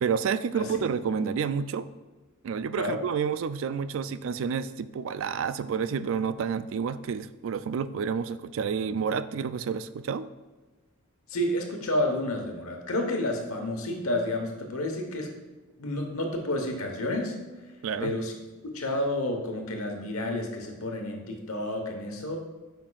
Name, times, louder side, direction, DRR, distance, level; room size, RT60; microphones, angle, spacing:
voice 1, 0.0-1.9 2.4-10.3 17.8-18.1, right 6 dB, 65° right, 14 dB, 0.3 m, -29 dB
voice 2, 11.3-15.3 15.8-17.3 18.0-18.3 18.6-22.4, left 1 dB, 90° left, 3 dB, 1.2 m, -30 dB
8.5 x 5.8 x 2.4 m, 1.2 s
head